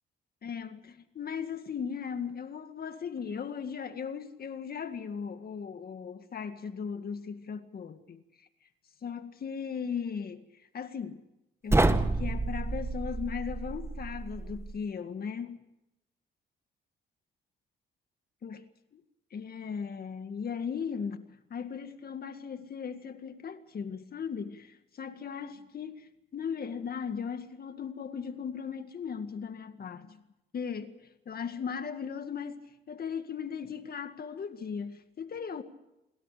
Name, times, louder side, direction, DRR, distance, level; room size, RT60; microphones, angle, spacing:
voice 1, 0.4-8.2 9.0-10.4 10.7-11.3 11.6-15.6 18.4-18.6 19.3-30.2 30.5-31.0 31.3-32.6 32.9-35.6, left 6 dB, 50° left, 2.0 m, -37 dB
sound 1, 11.7-14.8, right 2 dB, 15° right, 1.7 m, -29 dB
29.5 x 22.0 x 5.1 m
cardioid pair, 90°, 20 cm